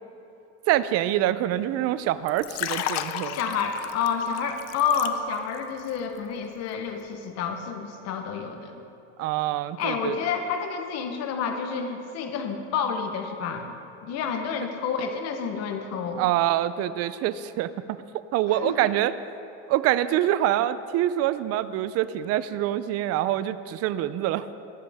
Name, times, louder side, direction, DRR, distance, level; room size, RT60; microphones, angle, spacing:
voice 1, 0.7-3.4 9.2-10.2 16.1-17.7 18.3-19.1 19.7-24.5, right 13 dB, 45° right, 15 dB, 0.5 m, -25 dB
Liquid, 2.2-5.6 5.9-6.2, left 12 dB, 90° left, 0.6 m, -33 dB
voice 2, 3.3-8.8 9.8-13.7 14.0-16.3 18.6-18.8, left 6 dB, 45° left, 5 dB, 1.0 m, -29 dB
19.5 x 7.5 x 3.5 m, 3.0 s
cardioid pair, 135°, 34 cm